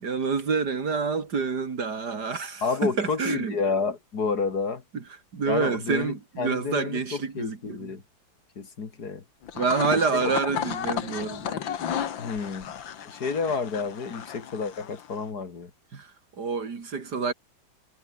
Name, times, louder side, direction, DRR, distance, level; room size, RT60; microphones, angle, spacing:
voice 1, 0.0-3.6 4.9-5.0 5.3-7.9 9.5-11.6 15.9-16.1 16.4-17.3, right 5 dB, 55° right, 2.8 m, -27 dB
voice 2, 2.6-4.8 5.5-8.0 8.6-9.2 10.1-10.2 12.2-12.7 13.1-15.7, left 4 dB, 50° left, 2.7 m, -30 dB
sound 1, 9.4-15.2, left 9 dB, 75° left, 2.1 m, -33 dB
omnidirectional pair, 2.1 m